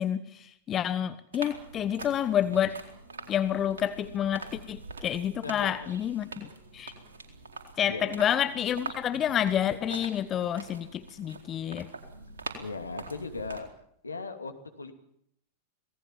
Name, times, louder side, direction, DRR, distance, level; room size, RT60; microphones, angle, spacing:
voice 1, 0.0-2.8 3.3-6.9 7.8-11.9, left 10 dB, 30° left, 13 dB, 1.2 m, -29 dB
sound 1, 1.3-13.6, right 3 dB, 70° right, 4.2 m, -44 dB
voice 2, 5.4-5.9 7.9-8.2 9.1-9.2 12.6-13.7 14.0-14.9, left 4 dB, 80° left, 6 dB, 2.7 m, -38 dB
26.5 x 18.5 x 7.4 m, 0.71 s
figure-of-eight pair, 90°, 0 cm